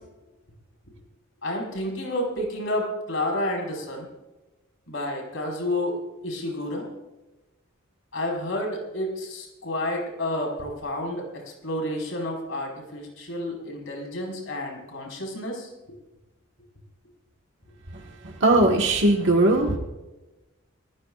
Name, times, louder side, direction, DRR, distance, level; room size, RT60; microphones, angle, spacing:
voice 1, 1.4-4.1 4.9-6.9 8.1-15.7, left 1 dB, 65° left, 0 dB, 5.0 m, -30 dB
voice 2, 17.9-19.8, right 2 dB, 60° right, 0 dB, 1.6 m, -20 dB
29.0 x 14.5 x 2.5 m, 1.0 s
head